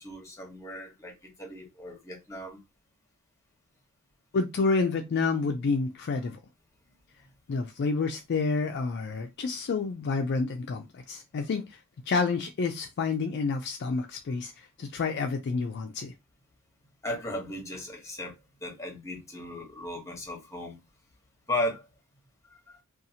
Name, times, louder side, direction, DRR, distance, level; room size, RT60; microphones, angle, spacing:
voice 1, 0.0-2.6 6.9-7.0 17.0-20.8 21.5-21.9 22.4-22.8, left 1 dB, 15° left, 1.0 m, -36 dB
voice 2, 4.3-6.4 7.5-11.8 12.1-16.1, left 4 dB, 50° left, 0.4 m, -29 dB
2.7 x 2.4 x 2.7 m
head